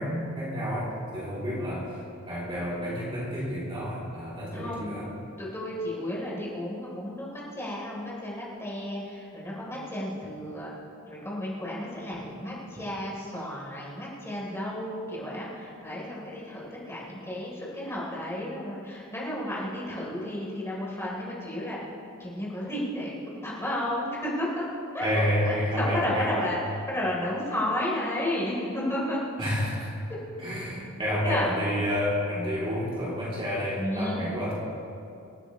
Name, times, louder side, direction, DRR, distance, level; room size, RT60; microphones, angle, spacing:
voice 1, 0.0-1.9 2.2-5.0 25.0-26.3 29.4-29.9 30.4-34.5, equal, 25° right, -8 dB, 3.2 m, -29 dB
voice 2, 4.5-5.0 5.4-10.7 11.1-21.8 22.2-23.2 23.4-24.7 24.9-26.6 26.9-29.3 30.1-30.2 31.1-31.6 33.8-34.2, left 1 dB, 10° left, -6 dB, 3.7 m, -32 dB
27.0 x 9.9 x 3.2 m, 2.5 s
head